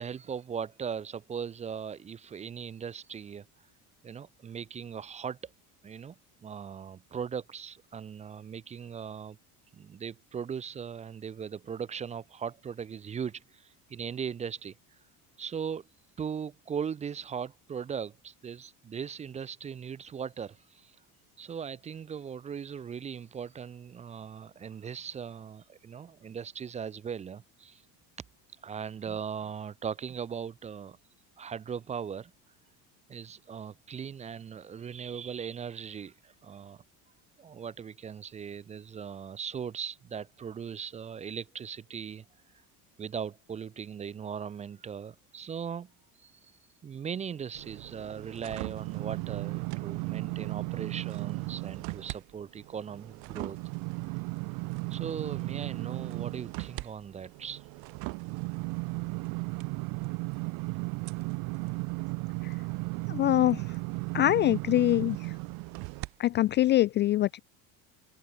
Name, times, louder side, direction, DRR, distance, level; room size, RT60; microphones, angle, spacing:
voice 1, 0.0-3.5 4.0-5.5 5.8-9.4 9.7-14.8 15.4-15.9 16.2-20.9 21.4-27.8 28.6-31.0 31.4-32.3 33.1-36.8 37.4-42.2 43.0-45.9 46.2-46.5 46.8-53.6 54.9-57.6, right 7 dB, 20° right, 0.6 m, -39 dB
sound 1, 47.5-52.2 52.6-66.1 66.6-66.7, right 29 dB, 70° right, 3.0 m, -35 dB
voice 2, 63.1-63.6 64.1-65.2 66.2-67.4, left 14 dB, 30° left, 0.4 m, -24 dB
open air
cardioid pair, 170°, 39 cm